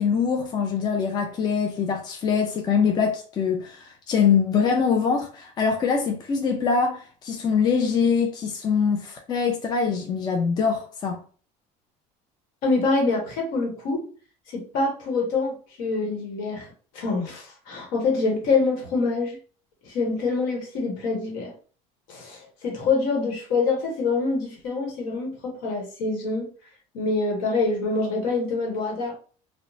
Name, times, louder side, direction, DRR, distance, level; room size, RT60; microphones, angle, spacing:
voice 1, 0.0-11.2, left 6 dB, 30° left, 0.4 m, -23 dB
voice 2, 12.6-14.0 14.5-16.7 16.9-19.4 19.8-21.5 22.1-26.5 26.9-29.2, left 3 dB, 75° left, 1.1 m, -25 dB
2.9 x 2.1 x 2.6 m
cardioid pair, 135°, 15 cm